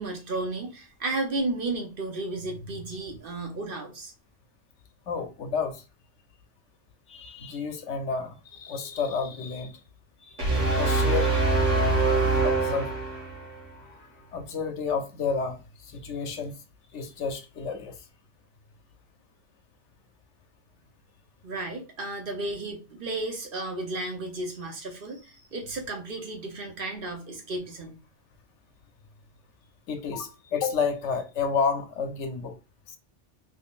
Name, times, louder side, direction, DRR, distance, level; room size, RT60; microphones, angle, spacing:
voice 1, 0.0-4.1 21.4-27.9, right 2 dB, 50° right, 1.0 m, -33 dB
voice 2, 5.1-5.8 7.1-9.8 10.2-11.5 12.4-12.9 13.8-16.6 16.9-18.0 29.9-32.6 32.9-33.0, left 5 dB, 80° left, 1.0 m, -31 dB
sound 1, 10.4-13.6, right 3 dB, 85° right, 1.3 m, -24 dB
3.8 x 3.2 x 2.4 m
omnidirectional pair, 1.2 m